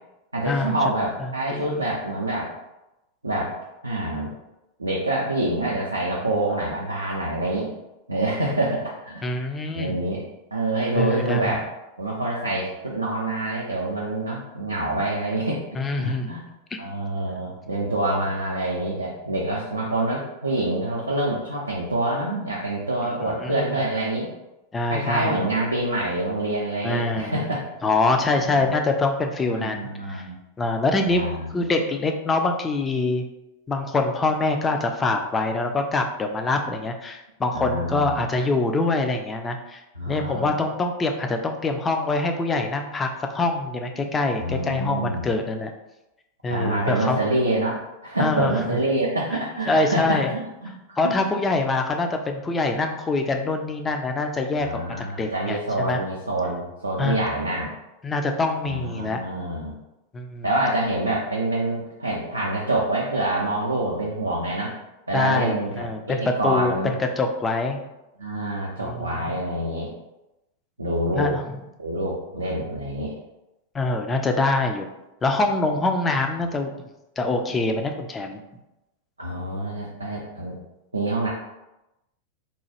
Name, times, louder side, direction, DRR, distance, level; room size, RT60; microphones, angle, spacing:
voice 1, 0.3-2.5 3.2-3.5 3.8-4.3 4.8-7.7 8.1-9.3 9.7-10.2 10.5-11.6 12.0-15.6 16.0-16.4 16.8-24.3 24.9-27.6 28.4-28.7 29.5-30.4 31.1-31.5 37.5-38.2 40.0-40.5 44.4-45.3 46.5-47.7 48.0-51.2 54.6-57.7 58.7-59.7 60.4-64.8 65.1-66.9 68.2-69.9 70.8-71.3 71.8-73.1 79.2-80.6 80.9-81.3, right 1 dB, 80° right, -3 dB, 0.4 m, -26 dB
voice 2, 1.2-1.8 9.2-10.0 10.9-11.6 15.8-16.3 23.2-23.7 24.7-25.4 26.8-27.3 27.8-29.8 30.1-30.3 30.6-31.2 31.5-33.3 33.7-39.8 40.1-45.7 46.4-47.2 48.2-48.6 49.7-50.3 51.0-54.7 55.0-56.0 57.0-57.2 58.0-59.2 60.1-60.5 65.1-67.8 68.8-69.2 71.1-71.6 73.7-74.9 75.2-76.7 77.2-78.4, left 3 dB, 15° left, 4 dB, 0.3 m, -24 dB
2.9 x 2.2 x 2.8 m, 0.95 s
figure-of-eight pair, 90°, 0 cm